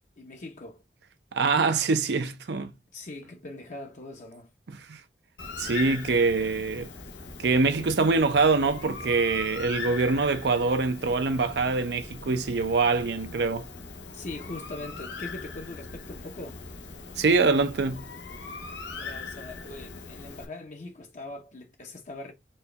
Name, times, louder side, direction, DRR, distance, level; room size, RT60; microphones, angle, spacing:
voice 1, 0.2-0.8 2.9-4.5 14.1-16.6 18.9-22.3, left 2 dB, 45° left, 0.8 m, -41 dB
voice 2, 1.3-2.7 4.7-5.0 5.6-6.9 7.4-13.7 17.2-18.1, right 4 dB, 70° right, 0.6 m, -24 dB
Bird, 5.4-20.5, left 4 dB, 85° left, 0.8 m, -40 dB
4.2 x 2.3 x 3.3 m
head